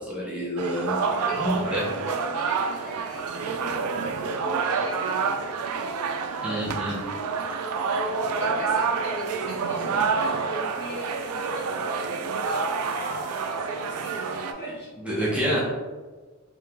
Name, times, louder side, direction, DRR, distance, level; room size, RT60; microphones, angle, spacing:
voice 1, 0.0-1.0 1.4-1.8 6.4-6.9 15.0-15.6, equal, 5° right, -6 dB, 0.6 m, -27 dB
sound 1, 0.6-14.5, right 5 dB, 80° right, 0.4 m, -28 dB
voice 2, 1.3-5.2 6.5-7.3 8.4-15.6, right 1 dB, 50° left, -5 dB, 1.2 m, -38 dB
3.0 x 2.8 x 3.5 m, 1.3 s
head